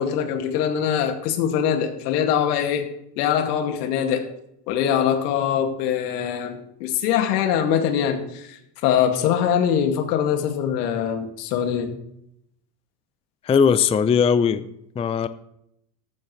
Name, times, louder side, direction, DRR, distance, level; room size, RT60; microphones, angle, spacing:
voice 1, 0.0-2.9 3.2-4.3 4.7-11.9, left 9 dB, 80° left, 5 dB, 2.3 m, -23 dB
voice 2, 13.4-14.7 15.0-15.3, left 6 dB, 15° left, 13 dB, 0.4 m, -19 dB
14.0 x 13.0 x 3.2 m, 0.78 s
supercardioid pair, 105°, 47 cm